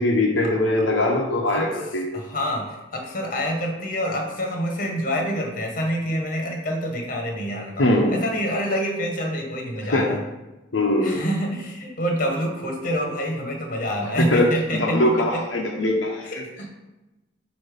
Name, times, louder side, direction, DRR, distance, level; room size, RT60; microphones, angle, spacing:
voice 1, 0.0-2.2 7.8-8.2 9.9-10.2 10.7-11.2 14.2-14.5 14.8-16.3, left 1 dB, 85° left, -1 dB, 0.9 m, -21 dB
voice 2, 1.4-1.8 2.1-10.2 11.0-15.4 16.2-16.7, equal, 45° left, 1 dB, 1.4 m, -27 dB
8.2 x 2.9 x 5.2 m, 1.0 s
head